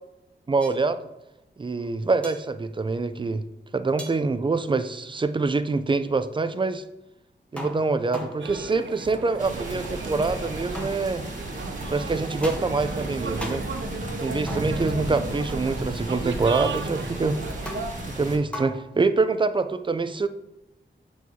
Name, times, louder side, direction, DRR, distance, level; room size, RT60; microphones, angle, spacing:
voice 1, 0.5-1.0 1.6-3.4 3.7-6.8 7.5-11.2 11.9-13.7 14.2-17.4 18.1-20.3, right 3 dB, 25° right, 11 dB, 0.3 m, -25 dB
sound 1, 0.6-0.8 2.2-2.4 4.0-4.2 7.6-8.7 10.7-11.4 12.4-13.0 13.4-13.8 14.5-15.1 17.7-18.1 18.5-19.0, equal, 5° left, 0.9 m, -38 dB
sound 2, 8.4-17.9, right 5 dB, 80° right, 0.5 m, -36 dB
sound 3, 9.4-18.4, right 1 dB, 40° right, 1.3 m, -34 dB
7.9 x 4.6 x 2.7 m, 0.95 s
wide cardioid pair, 105°, 19 cm